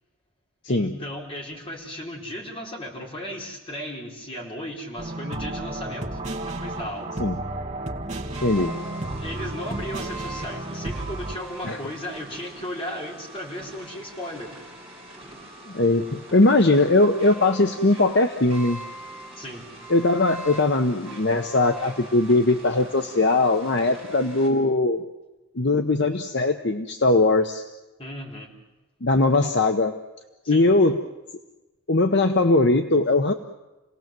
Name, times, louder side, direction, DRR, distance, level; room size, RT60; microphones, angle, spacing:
voice 1, 0.7-7.1 9.2-14.5 19.3-19.6 28.0-28.5 30.4-30.7, equal, 25° left, -1 dB, 4.3 m, -35 dB
sound 1, 5.0-11.4, right 1 dB, 30° right, 1.8 m, -32 dB
sound 2, 8.3-24.5, right 2 dB, ahead, 7.1 m, -42 dB
voice 2, 8.4-8.8 11.6-11.8 15.7-18.8 19.9-25.0 25.5-27.6 29.0-29.9 30.5-31.0 31.9-33.3, left 2 dB, 50° left, 6 dB, 1.0 m, -20 dB
29.5 x 18.0 x 7.7 m, 1.1 s
head